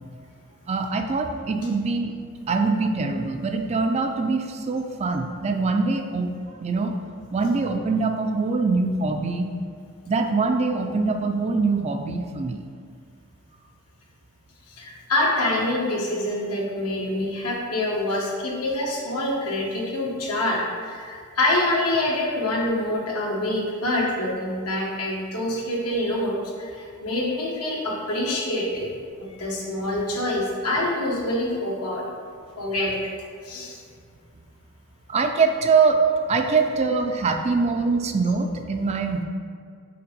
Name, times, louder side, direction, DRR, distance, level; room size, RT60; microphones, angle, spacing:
voice 1, 0.7-2.2 2.5-6.3 6.6-7.0 7.3-9.5 10.1-12.6 35.1-39.2, right 4 dB, 30° right, 5 dB, 0.3 m, -23 dB
voice 2, 14.7-28.9 29.2-32.0 32.6-32.9 33.4-33.8, left 1 dB, 85° left, -3 dB, 1.4 m, -26 dB
5.7 x 3.5 x 5.3 m, 2.2 s
head